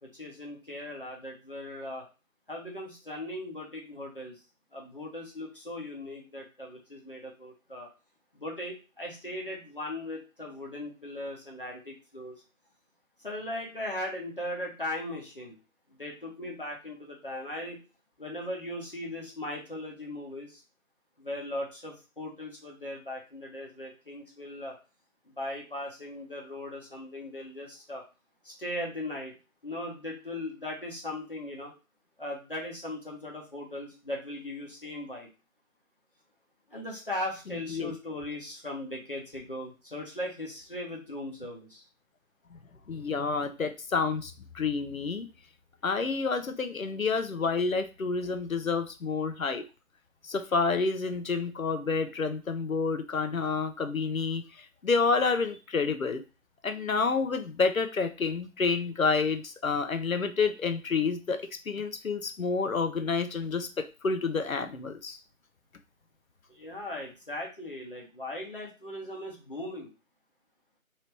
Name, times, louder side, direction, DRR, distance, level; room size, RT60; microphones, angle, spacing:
voice 1, 0.1-2.0 2.5-4.4 4.7-7.9 8.3-12.4 13.2-15.6 16.0-17.8 18.2-20.6 21.2-24.8 25.4-28.0 28.4-29.3 29.6-31.7 32.2-35.3 36.7-41.8 66.5-69.9, left 1 dB, 40° left, -1 dB, 0.9 m, -38 dB
voice 2, 42.9-45.3 45.8-49.6 50.2-54.4 54.8-56.2 56.6-65.2, left 4 dB, 70° left, 8 dB, 0.7 m, -29 dB
3.0 x 2.8 x 3.2 m, 0.31 s
figure-of-eight pair, 160°, 42 cm